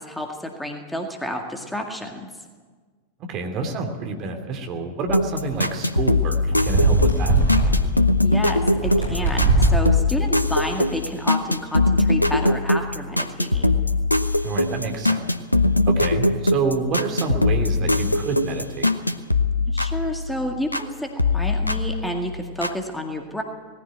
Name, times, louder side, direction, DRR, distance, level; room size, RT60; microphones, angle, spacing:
voice 1, 0.0-2.3 8.2-13.8 19.7-23.4, left 1 dB, 5° left, 3 dB, 2.0 m, -30 dB
voice 2, 3.2-7.4 14.4-15.3 15.8-18.9, right 4 dB, 35° right, 4 dB, 2.7 m, -28 dB
sound 1, 5.1-20.9 21.2-22.8, left 2 dB, 85° left, 0.8 m, -22 dB
sound 2, 5.5-5.7 6.5-7.7 8.6-9.8 10.5-10.9, right 2 dB, 75° right, 7.2 m, -20 dB
19.5 x 14.5 x 9.1 m, 1.4 s
figure-of-eight pair, 90°, 0 cm